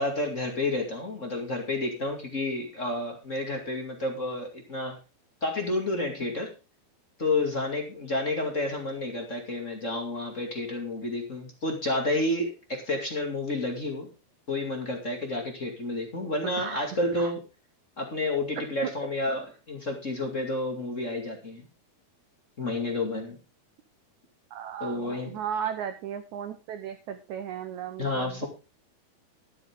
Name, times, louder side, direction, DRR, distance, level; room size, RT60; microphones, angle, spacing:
voice 1, 0.0-5.0 5.4-6.5 7.2-14.1 14.5-17.4 18.0-21.6 22.6-23.4 24.8-25.3 28.0-28.5, left 2 dB, 25° left, 3 dB, 1.9 m, -30 dB
voice 2, 16.6-17.3 18.8-18.9 24.5-28.5, right 8 dB, 75° right, 8 dB, 1.8 m, -36 dB
12.0 x 11.0 x 3.6 m, 0.29 s
omnidirectional pair, 4.5 m